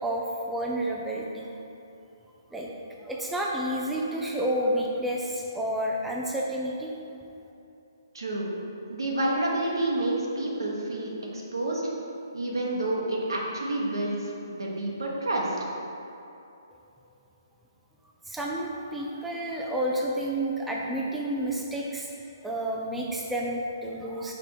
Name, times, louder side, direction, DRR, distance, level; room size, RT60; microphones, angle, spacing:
voice 1, 0.0-1.5 2.5-2.7 3.0-6.9 18.3-22.1 22.4-24.3, right 1 dB, 5° right, -3 dB, 0.5 m, -30 dB
voice 2, 8.1-8.5 8.9-11.8 12.3-15.6, right 1 dB, 80° right, -3 dB, 1.3 m, -29 dB
5.0 x 4.6 x 4.7 m, 2.7 s
hypercardioid pair, 145°, 2 cm